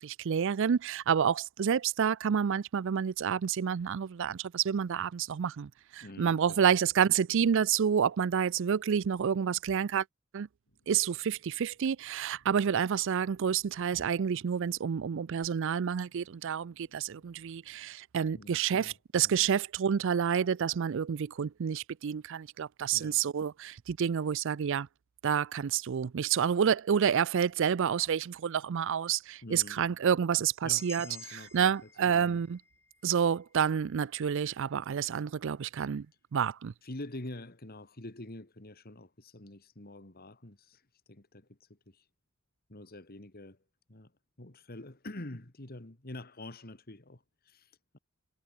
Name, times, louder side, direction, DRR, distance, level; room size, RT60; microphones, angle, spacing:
voice 1, 0.0-10.0 10.3-10.5 10.9-24.9 25.2-32.6 33.0-36.1 36.3-36.7, right 7 dB, 60° right, 0.4 m, -29 dB
voice 2, 6.0-6.7 18.4-19.0 19.2-19.5 22.9-23.2 29.4-29.8 30.6-32.4 36.8-40.8 41.1-42.0 42.7-43.6 43.9-44.1 44.4-48.0, left 1 dB, 45° left, 2.1 m, -46 dB
sound 1, 10.7-18.0, left 1 dB, 70° left, 5.6 m, -70 dB
sound 2, 30.8-34.8, left 4 dB, 10° left, 2.7 m, -52 dB
head